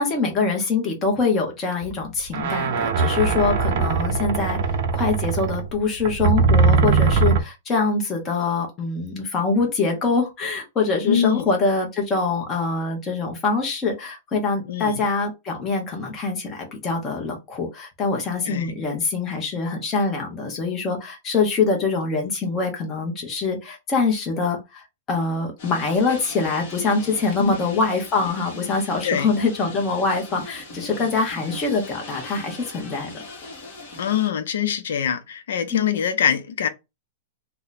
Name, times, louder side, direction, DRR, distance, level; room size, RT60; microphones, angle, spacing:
voice 1, 0.0-4.6 4.9-33.1 35.7-35.9, left 4 dB, 15° left, 0.8 m, -24 dB
sound 1, 1.8-1.9 2.3-7.4, right 5 dB, 40° right, 0.5 m, -20 dB
voice 2, 11.1-11.4 14.7-15.0 18.5-18.7 27.4-27.5 29.0-29.3 34.0-36.7, left 8 dB, 75° left, 0.5 m, -23 dB
sound 2, 25.6-34.3, left 2 dB, 40° left, 1.3 m, -40 dB
2.8 x 2.1 x 3.9 m
supercardioid pair, 175°, 0 cm